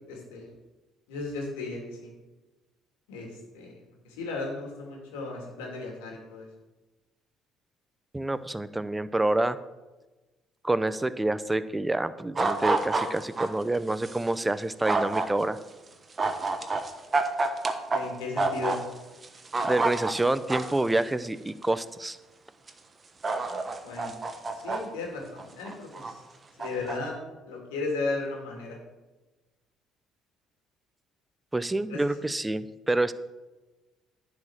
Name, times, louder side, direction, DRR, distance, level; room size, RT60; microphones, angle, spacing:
voice 1, 0.1-0.5 1.1-2.1 3.1-6.5 17.9-18.8 23.8-24.2 24.5-26.2 26.6-28.8 31.9-32.3, left 3 dB, 90° left, 0 dB, 2.5 m, -35 dB
voice 2, 8.1-9.6 10.6-15.6 19.6-22.2 31.5-33.1, right 2 dB, 15° right, 14 dB, 0.6 m, -27 dB
sound 1, 12.4-13.5 14.0-14.2 14.8-15.3 16.2-18.0 18.4-18.8 19.2-20.8 21.6-21.7 22.7-22.8 23.2-24.8 25.4-26.1 26.6-27.0, right 3 dB, 35° right, 1.2 m, -27 dB
10.5 x 5.1 x 7.2 m, 1.1 s
supercardioid pair, 65°, 0 cm